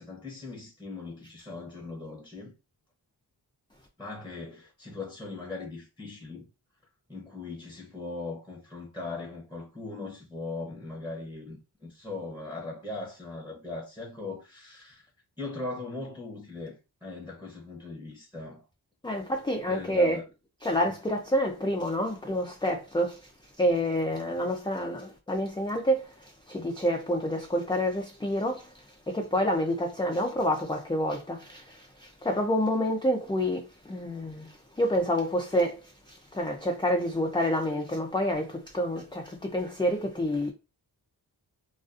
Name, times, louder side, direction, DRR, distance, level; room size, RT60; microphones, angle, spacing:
voice 1, 0.0-2.5 4.0-6.5 7.1-15.1 15.4-18.6 19.7-20.2 20.8-20.9, left 3 dB, 5° right, 0.8 m, -39 dB
voice 2, 19.0-20.2 20.6-23.3 23.6-26.1 26.5-28.7 29.1-40.5, equal, 10° left, 0.4 m, -28 dB
2.4 x 2.4 x 2.4 m
wide cardioid pair, 80°, 41 cm